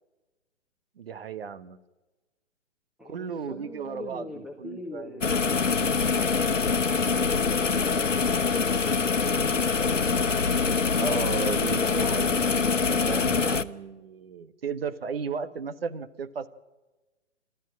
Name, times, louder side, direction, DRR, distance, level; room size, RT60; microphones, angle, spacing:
voice 1, 1.0-1.8 3.0-5.1 11.0-16.5, right 6 dB, 50° right, 12 dB, 1.4 m, -35 dB
voice 2, 3.0-5.5, left 2 dB, ahead, 0 dB, 1.5 m, -43 dB
sound 1, 5.2-13.6, left 5 dB, 80° left, 1.1 m, -24 dB
28.0 x 13.0 x 8.9 m, 1.1 s
figure-of-eight pair, 130°, 37 cm